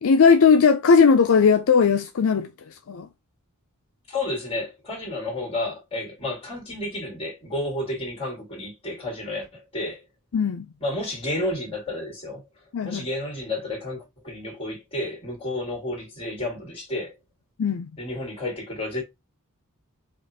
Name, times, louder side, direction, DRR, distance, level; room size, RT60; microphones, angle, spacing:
voice 1, 0.0-2.5 2.9-3.1 10.3-10.7 12.7-13.0 17.6-17.9, left 5 dB, 65° left, 0.4 m, -18 dB
voice 2, 4.1-10.0 10.8-12.4 12.8-17.2 18.0-19.0, left 1 dB, 25° left, 2.2 m, -31 dB
5.1 x 2.4 x 3.4 m
head